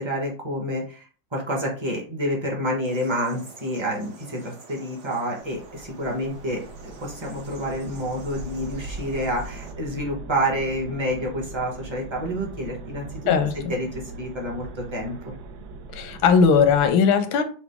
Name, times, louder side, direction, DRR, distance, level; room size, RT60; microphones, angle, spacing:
voice 1, 0.0-13.2 13.7-15.3, equal, 25° right, -2 dB, 0.6 m, -28 dB
sound 1, 2.8-9.7, right 4 dB, 55° right, 1.0 m, -47 dB
sound 2, 5.4-16.9, right 3 dB, 75° right, 0.9 m, -40 dB
voice 2, 15.9-17.4, left 6 dB, 85° left, 8 dB, 1.4 m, -18 dB
5.9 x 2.1 x 3.5 m, 0.40 s
omnidirectional pair, 2.2 m